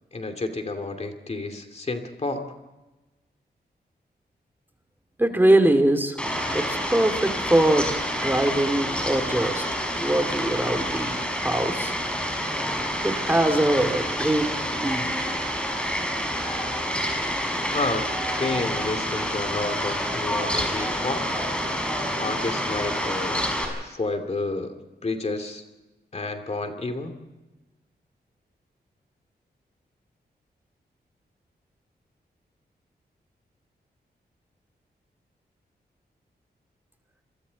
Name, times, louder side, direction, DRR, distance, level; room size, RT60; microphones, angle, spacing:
voice 1, 0.1-2.4 17.7-21.4 22.2-24.7 25.0-25.6 26.1-27.1, left 3 dB, 40° left, 6 dB, 2.6 m, -30 dB
voice 2, 5.2-6.2 6.5-7.9 8.2-9.6 10.0-12.0 13.0-15.1, right 1 dB, 10° right, 6 dB, 2.4 m, -22 dB
Fowl, 6.2-23.7, equal, 5° left, 5.8 m, -28 dB
28.0 x 23.0 x 4.1 m, 1.1 s
wide cardioid pair, 95°, 17 cm